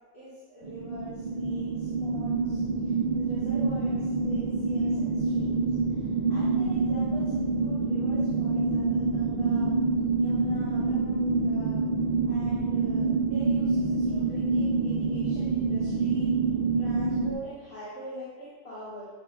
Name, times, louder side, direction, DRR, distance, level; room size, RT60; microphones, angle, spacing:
voice 1, 0.1-5.6 5.9-9.7 10.2-11.8 12.2-16.3 16.8-19.1, right 1 dB, 75° left, -12 dB, 3.1 m, -44 dB
sound 1, 0.6-17.3, right 3 dB, 60° right, 0.4 m, -27 dB
10.0 x 7.1 x 2.3 m, 1.5 s
omnidirectional pair, 1.6 m